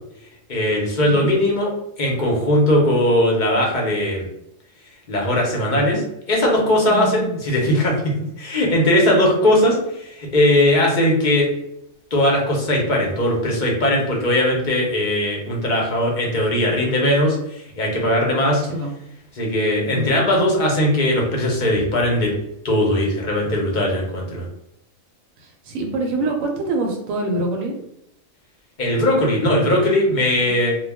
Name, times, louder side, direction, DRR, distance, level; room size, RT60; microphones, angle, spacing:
voice 1, 0.5-1.7 2.0-4.3 5.1-7.9 8.4-11.5 12.1-18.6 19.4-22.3 22.6-24.5 28.8-30.8, left 1 dB, 45° left, -2 dB, 0.7 m, -19 dB
voice 2, 6.9-7.4 7.6-7.8 18.6-18.9 19.9-20.2 25.4-27.7 30.4-30.5, right 2 dB, 80° right, 1 dB, 1.0 m, -26 dB
2.3 x 2.2 x 3.4 m, 0.81 s
omnidirectional pair, 1.4 m